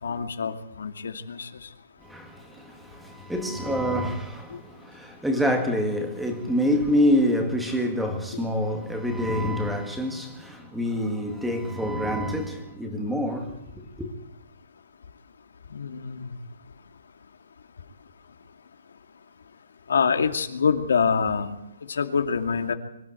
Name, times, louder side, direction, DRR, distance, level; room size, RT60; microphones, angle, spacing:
voice 1, 0.0-1.7 4.5-4.6 15.7-16.3 19.9-21.5 21.9-22.7, left 6 dB, 85° left, 2.4 m, -26 dB
voice 2, 2.0-13.6 14.0-14.1, equal, ahead, 1.8 m, -26 dB
24.5 x 12.5 x 8.5 m
hypercardioid pair, 175°, 0 cm